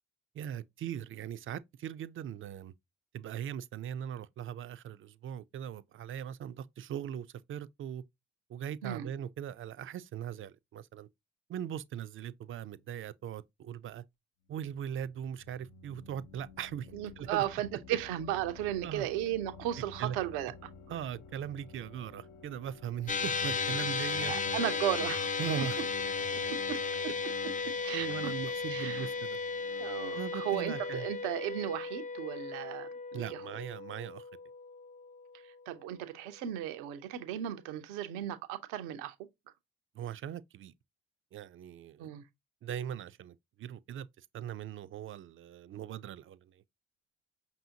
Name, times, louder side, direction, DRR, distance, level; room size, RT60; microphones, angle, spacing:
voice 1, 0.3-2.7 3.1-8.0 8.5-11.1 11.5-14.0 14.5-17.4 18.8-19.1 20.0-20.2 20.9-24.3 25.4-25.8 27.7-29.4 30.1-31.1 33.1-34.2 40.0-40.7 41.3-42.1 42.6-44.1 44.3-46.5, right 9 dB, 40° right, 0.4 m, -40 dB
sound 1, 14.4-31.2, left 4 dB, 70° left, 0.7 m, -54 dB
voice 2, 16.9-20.7 24.3-25.3 25.6-25.7 26.5-26.8 27.8-28.3 28.7-29.1 29.8-33.6 35.7-39.1 42.0-42.2, right 12 dB, 80° right, 0.6 m, -35 dB
sound 2, 23.1-35.6, left 4 dB, 25° left, 0.4 m, -35 dB
5.4 x 2.7 x 2.7 m
hypercardioid pair, 50°, 31 cm